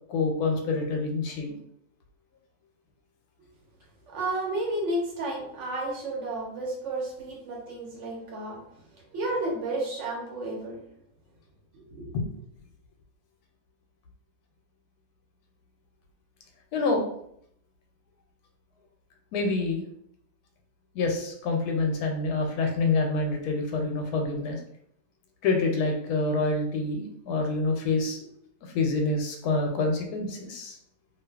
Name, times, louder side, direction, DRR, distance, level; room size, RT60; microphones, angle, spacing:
voice 1, 0.1-1.5 12.1-12.3 16.7-17.0 19.3-19.8 20.9-24.6 25.4-28.2 28.6-30.8, left 3 dB, 90° left, 2 dB, 1.1 m, -27 dB
voice 2, 4.1-8.6 9.1-10.8 11.7-12.1, right 2 dB, 60° right, -2 dB, 1.1 m, -32 dB
2.6 x 2.5 x 2.3 m, 0.70 s
omnidirectional pair, 1.6 m